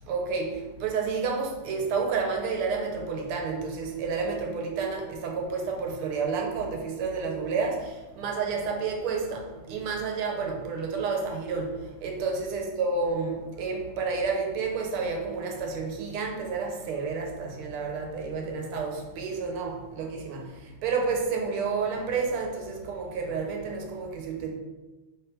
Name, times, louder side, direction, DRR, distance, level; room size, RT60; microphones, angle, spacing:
voice 1, 0.0-24.5, right 4 dB, 85° right, 2 dB, 1.6 m, -30 dB
3.4 x 3.3 x 4.4 m, 1.2 s
omnidirectional pair, 2.4 m